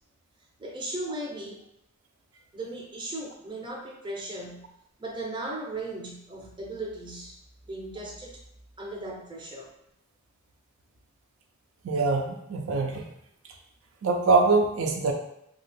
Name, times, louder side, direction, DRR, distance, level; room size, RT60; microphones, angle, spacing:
voice 1, 0.6-1.6 2.5-4.6 5.0-7.4 7.6-8.4 8.8-9.7, right 2 dB, 25° right, -1 dB, 0.6 m, -37 dB
voice 2, 11.8-13.1 14.0-15.1, right 3 dB, 75° right, 2 dB, 0.4 m, -23 dB
2.7 x 2.3 x 3.3 m, 0.76 s
head